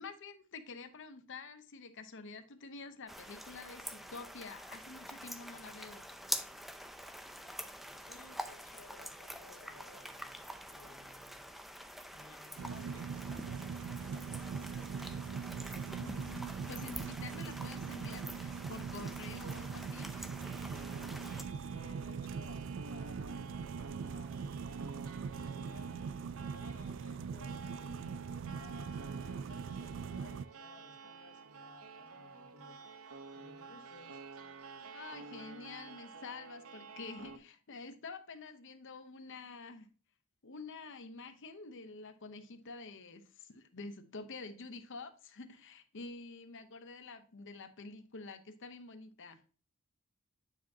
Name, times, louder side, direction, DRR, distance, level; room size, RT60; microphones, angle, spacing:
voice 1, 0.0-6.0 15.8-20.2 34.9-39.9 40.4-49.4, left 3 dB, 60° left, 0.8 m, -48 dB
sound 1, 3.1-21.4, equal, ahead, 0.5 m, -46 dB
voice 2, 8.1-11.4 12.1-14.8 21.7-26.0 26.5-32.8 33.3-34.2, left 3 dB, 75° left, 1.1 m, -58 dB
sound 2, 12.6-30.4, right 6 dB, 60° right, 0.3 m, -41 dB
sound 3, 20.4-37.4, right 4 dB, 75° right, 0.8 m, -51 dB
8.9 x 4.8 x 2.8 m
head